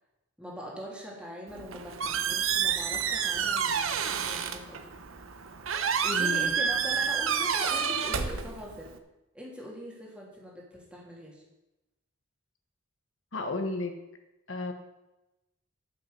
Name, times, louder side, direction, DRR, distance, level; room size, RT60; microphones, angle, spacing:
voice 1, 0.4-4.9 6.0-8.9 9.3-11.4, equal, 5° right, -4 dB, 3.2 m, -42 dB
Squeak, 1.5-9.0, right 7 dB, 85° right, 1.0 m, -29 dB
voice 2, 6.1-6.5 13.3-14.0 14.5-14.7, left 2 dB, 70° left, 5 dB, 1.2 m, -33 dB
12.5 x 7.2 x 6.8 m, 0.98 s
head